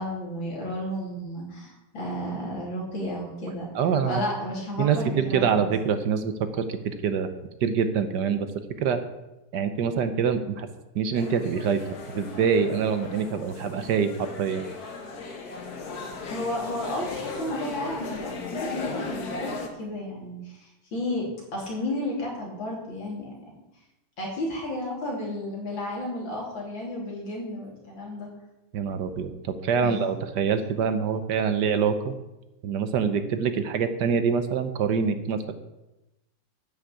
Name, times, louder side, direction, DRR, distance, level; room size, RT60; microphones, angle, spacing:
voice 1, 0.0-3.7 4.1-5.7 16.3-23.3 24.2-28.3 29.8-29.9, left 1 dB, 85° left, -3 dB, 3.8 m, -32 dB
voice 2, 3.7-4.2 4.8-7.3 7.6-8.5 8.8-9.0 9.5-10.7 10.9-11.8 12.1-14.6 28.7-32.1 32.6-35.5, right 6 dB, 65° right, 9 dB, 1.4 m, -25 dB
sound 1, 11.1-19.7, left 4 dB, 55° left, 1.7 m, -37 dB
9.5 x 6.4 x 8.4 m, 0.98 s
omnidirectional pair, 2.1 m